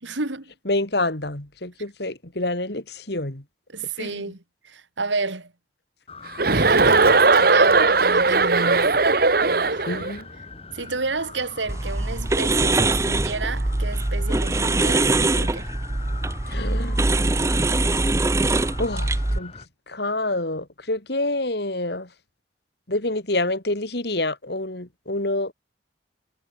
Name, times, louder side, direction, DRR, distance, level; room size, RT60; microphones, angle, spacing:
voice 1, 0.0-0.5 3.7-5.5 6.4-9.0 9.4-9.8 10.7-15.7, right 3 dB, 80° right, 2.4 m, -30 dB
voice 2, 0.7-3.4 4.0-4.2 9.9-10.3 16.5-17.3 18.8-19.5 19.9-22.1 22.9-25.5, left 2 dB, 60° left, 2.7 m, -27 dB
sound 1, 6.1-19.7, left 3 dB, 30° left, 4.7 m, -42 dB
Chuckle chortle, 6.4-10.1, right 3 dB, 50° right, 1.4 m, -18 dB
sound 2, 11.7-19.4, right 2 dB, 15° right, 0.4 m, -22 dB
head